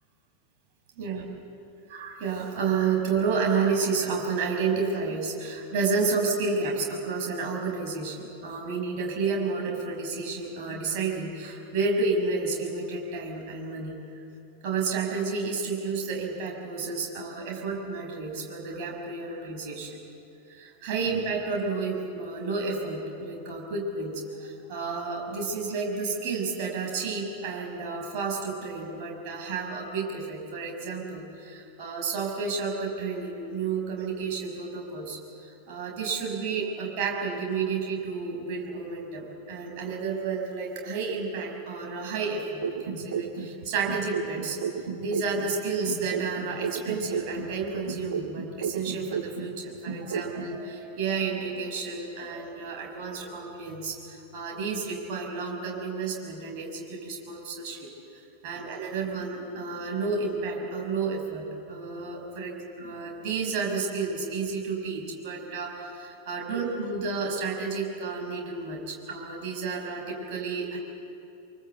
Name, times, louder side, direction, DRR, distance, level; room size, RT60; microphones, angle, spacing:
voice 1, 1.9-13.9 14.6-20.0 20.5-35.2 35.7-44.6 45.0-57.9 58.4-70.8, right 4 dB, 45° right, 0 dB, 6.5 m, -31 dB
sound 1, 42.6-45.6 45.9-49.6 49.9-50.6, right 7 dB, 65° right, 1.5 m, -33 dB
26.5 x 24.0 x 8.2 m, 2.7 s
figure-of-eight pair, 90°, 0 cm